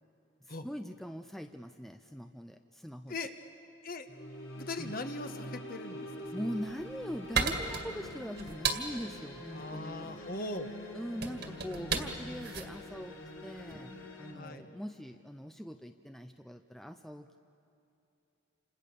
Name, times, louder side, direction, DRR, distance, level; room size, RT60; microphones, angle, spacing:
voice 1, 0.4-3.1 4.8-4.9 6.3-10.1 10.9-13.2 13.4-13.9 14.2-17.3, equal, ahead, 7 dB, 0.6 m, -42 dB
sound 1, 4.1-14.3, left 1 dB, 85° left, 4.1 m, -45 dB
voice 2, 4.6-6.5 9.5-10.7 14.3-14.7, left 2 dB, 45° left, 7 dB, 1.5 m, -40 dB
sound 2, 6.5-13.9, right 5 dB, 55° right, 2.2 m, -36 dB
29.0 x 27.0 x 6.9 m, 2.8 s
head